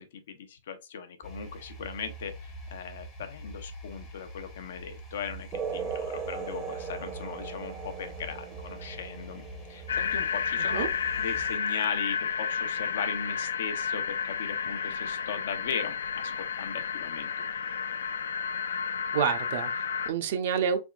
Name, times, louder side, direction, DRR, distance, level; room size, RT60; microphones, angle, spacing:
voice 1, 0.0-9.4 9.7-10.9 11.2-17.3, left 6 dB, 60° left, 0.8 m, -38 dB
Dark Ambience, 1.2-11.6, equal, 15° left, 0.8 m, -45 dB
sound 1, 5.5-12.5, right 6 dB, 20° right, 0.3 m, -39 dB
sound 2, 9.9-20.1, left 7 dB, 85° left, 0.4 m, -31 dB
voice 2, 10.6-10.9 19.1-20.8, right 7 dB, 45° right, 0.7 m, -29 dB
4.1 x 3.5 x 2.4 m
hypercardioid pair, 170°, 0 cm